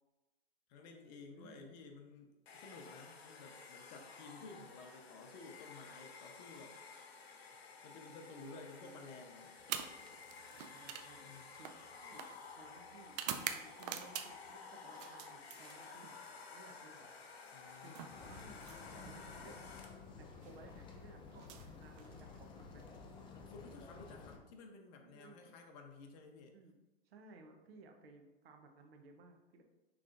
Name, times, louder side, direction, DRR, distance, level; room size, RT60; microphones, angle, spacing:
voice 1, 0.7-6.8 7.8-9.6 11.2-11.5 17.5-18.1 23.3-26.6, left 3 dB, 45° left, 4 dB, 0.9 m, -54 dB
voice 2, 1.3-1.7 8.4-9.2 10.6-17.2 17.8-18.0 18.2-19.7 20.1-21.5 21.8-22.9 25.0-25.6 26.5-26.8 27.0-29.6, right 3 dB, 75° right, 3 dB, 0.9 m, -59 dB
Domestic sounds home sounds, 2.5-20.1, left 5 dB, 85° left, 0.8 m, -54 dB
sound 1, 9.6-14.5 14.9-16.2 17.4-19.2 20.3-20.5 21.3-22.5, right 9 dB, 45° right, 0.5 m, -46 dB
sound 2, 18.1-24.4, left 4 dB, 15° left, 0.4 m, -53 dB
6.0 x 3.3 x 2.5 m, 1.0 s
hypercardioid pair, 115°, 31 cm